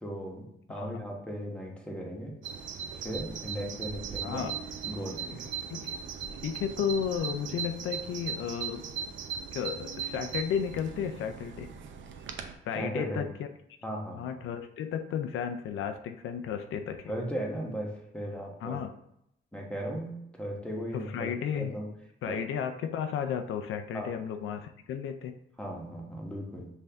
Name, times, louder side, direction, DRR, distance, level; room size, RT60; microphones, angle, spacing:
voice 1, 0.0-2.3 2.9-4.5 4.8-5.5 12.7-13.3 13.8-14.2 17.1-18.8 19.5-21.8 22.2-22.4 23.9-24.1 25.6-26.7, equal, 5° left, -1 dB, 1.1 m, -37 dB
Bird vocalization bird call bird song, 2.4-12.6, right 7 dB, 75° right, 0.6 m, -38 dB
voice 2, 4.2-4.5 5.7-5.9 6.4-8.8 9.5-11.7 12.6-13.5 14.1-17.1 18.6-18.9 20.9-21.7 22.2-25.3, left 8 dB, 85° left, 7 dB, 0.4 m, -33 dB
5.5 x 2.6 x 3.4 m, 0.78 s
cardioid pair, 105°, 20 cm